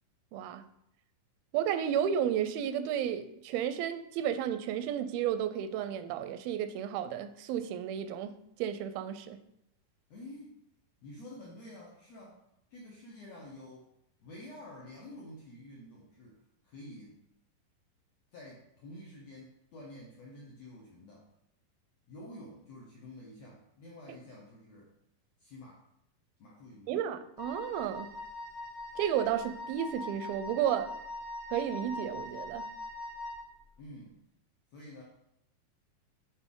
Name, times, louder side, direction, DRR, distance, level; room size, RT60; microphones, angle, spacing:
voice 1, 0.3-0.6 1.5-8.3 8.6-9.4 26.9-28.1 29.0-30.9 31.5-32.7, right 9 dB, 85° right, 10 dB, 2.4 m, -32 dB
voice 2, 10.1-10.6 11.0-12.4 12.7-13.9 14.2-17.2 18.3-21.3 22.1-24.9 25.4-25.9 26.4-27.0 33.8-34.2 34.7-35.0, left 1 dB, 75° left, -3 dB, 1.6 m, -49 dB
Wind instrument woodwind instrument, 27.4-33.5, left 2 dB, 25° left, 0.9 m, -42 dB
8.0 x 3.9 x 3.7 m, 0.80 s
omnidirectional pair, 4.2 m